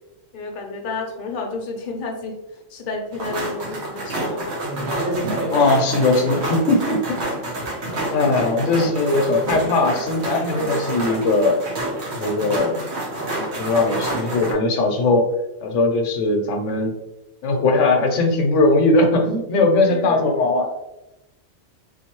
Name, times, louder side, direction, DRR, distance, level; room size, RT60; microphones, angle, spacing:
voice 1, 0.3-2.3 2.7-4.8 7.6-8.2 19.8-20.6, left 3 dB, 50° left, 2 dB, 0.8 m, -31 dB
sound 1, 3.1-14.5, right 1 dB, 60° right, 1.2 m, -27 dB
voice 2, 5.5-7.2 8.0-11.6 12.1-12.8 13.6-15.3 15.6-16.9 17.4-20.7, left 2 dB, 75° left, 3 dB, 1.0 m, -19 dB
3.8 x 2.6 x 2.9 m, 0.95 s
omnidirectional pair, 1.3 m